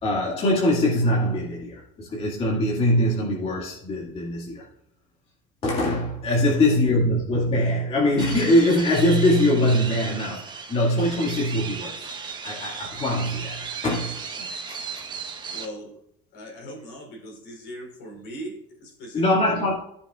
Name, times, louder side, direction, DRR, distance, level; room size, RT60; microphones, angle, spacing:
voice 1, 0.0-4.6 5.6-12.1 12.4-15.1 19.1-19.7, left 1 dB, 35° left, -5 dB, 2.3 m, -23 dB
sound 1, 8.2-15.6, right 5 dB, 25° right, 1.2 m, -35 dB
voice 2, 15.5-16.0 16.3-19.7, right 1 dB, 65° left, -1 dB, 3.6 m, -39 dB
14.5 x 7.0 x 2.5 m, 0.72 s
cardioid pair, 125°, 17 cm